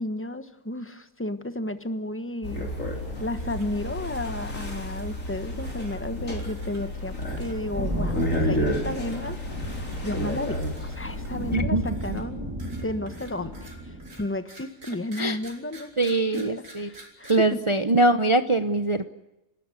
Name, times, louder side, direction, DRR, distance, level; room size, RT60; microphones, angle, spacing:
voice 1, 0.0-2.7 3.2-12.5 12.8-16.0 16.3-17.6, left 1 dB, 10° left, 10 dB, 1.2 m, -33 dB
sound 1, 2.4-11.6, left 1 dB, 60° left, 4.8 m, -31 dB
sound 2, 3.2-3.8 4.0-4.3 4.7-5.2 5.6-6.0 6.4-6.9 7.2-7.6 8.1-8.4 8.8-9.3 9.6-10.1 10.5-11.4 11.8-17.3, right 1 dB, 85° right, 5.4 m, -50 dB
sound 3, 7.3-14.2, equal, 5° right, 7.3 m, -34 dB
voice 2, 11.5-12.2 15.2-15.4 16.0-16.9 17.3-19.0, right 2 dB, 25° right, 10 dB, 0.7 m, -23 dB
30.0 x 13.0 x 9.8 m, 0.93 s
omnidirectional pair, 1.6 m